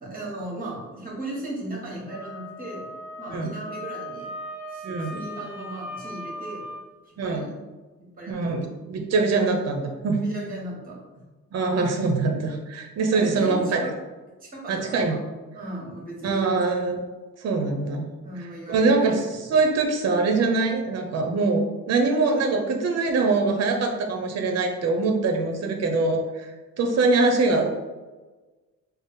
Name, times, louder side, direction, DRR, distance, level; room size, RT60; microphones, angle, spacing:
voice 1, 0.0-2.9 3.2-4.3 4.7-6.7 7.1-7.5 8.2-8.5 10.2-11.0 13.1-13.9 14.4-15.2 15.5-16.6 18.2-19.1 19.5-19.6, right 1 dB, 30° right, -3 dB, 1.5 m, -36 dB
Wind instrument woodwind instrument, 2.1-6.8, left 1 dB, 5° right, 0.6 m, -38 dB
voice 2, 4.8-5.2 7.2-7.5 8.3-10.2 11.5-13.8 14.7-15.1 16.2-17.0 17.4-18.1 18.7-19.2 19.5-26.5 26.8-27.7, right 3 dB, 60° right, 3 dB, 0.7 m, -23 dB
3.4 x 2.0 x 4.2 m, 1.2 s
cardioid pair, 90°, 30 cm